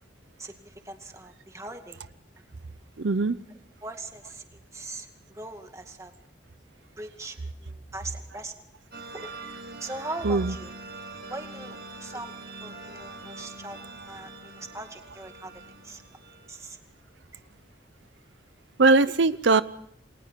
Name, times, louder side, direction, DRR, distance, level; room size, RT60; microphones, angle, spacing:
voice 1, 0.4-2.0 2.4-2.5 3.5-6.1 7.0-8.6 9.1-9.3 9.8-10.7 11.3-13.8 14.1-16.0 16.5-16.8 17.3-17.4, right 2 dB, 15° right, 2.2 m, -41 dB
voice 2, 3.0-3.4 10.2-10.5 18.8-19.6, right 3 dB, 90° right, 0.7 m, -20 dB
sound 1, 8.9-16.6, right 3 dB, 65° right, 5.8 m, -43 dB
29.0 x 21.5 x 4.6 m
head